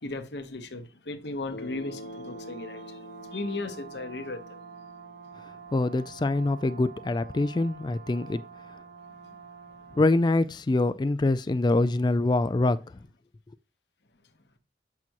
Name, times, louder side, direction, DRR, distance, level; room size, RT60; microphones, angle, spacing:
voice 1, 0.0-4.6, left 2 dB, 75° left, 1.1 m, -36 dB
Bass guitar, 1.5-5.7, left 1 dB, 55° left, 1.3 m, -45 dB
Brass instrument, 1.5-10.2, right 6 dB, 75° right, 1.1 m, -47 dB
voice 2, 5.7-8.4 8.7-8.8 9.9-12.8, left 2 dB, 25° left, 0.3 m, -24 dB
8.4 x 5.9 x 2.9 m
head